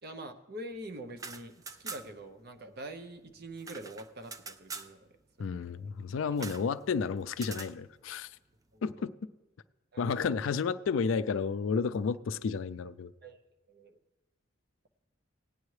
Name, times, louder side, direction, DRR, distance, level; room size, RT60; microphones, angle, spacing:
voice 1, 0.0-5.9 6.3-6.5 8.7-9.0 9.9-10.3 13.2-13.4 13.7-14.0, right 1 dB, 50° right, 7 dB, 0.8 m, -45 dB
sound 1, 1.1-2.3 2.6-2.7 2.9-4.9 6.4-6.7 7.3-7.7, right 4 dB, 15° right, 0.3 m, -44 dB
voice 2, 5.4-8.3 8.8-9.1 10.0-13.1, left 5 dB, 75° left, 14 dB, 0.4 m, -31 dB
18.0 x 9.5 x 3.2 m, 1.1 s
head